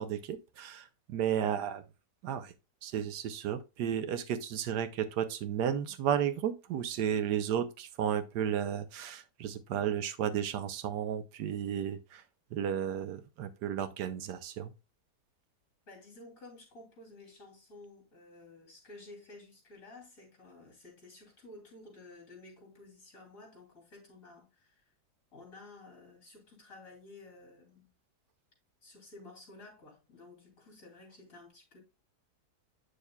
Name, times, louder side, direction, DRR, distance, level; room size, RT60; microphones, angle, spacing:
voice 1, 0.0-1.8 2.2-2.5 2.8-12.2 12.5-14.7, right 9 dB, 90° right, 1.3 m, -33 dB
voice 2, 15.9-24.8 25.3-27.9 28.8-31.8, left 2 dB, 55° left, 3.1 m, -53 dB
8.6 x 6.5 x 2.2 m
omnidirectional pair, 1.7 m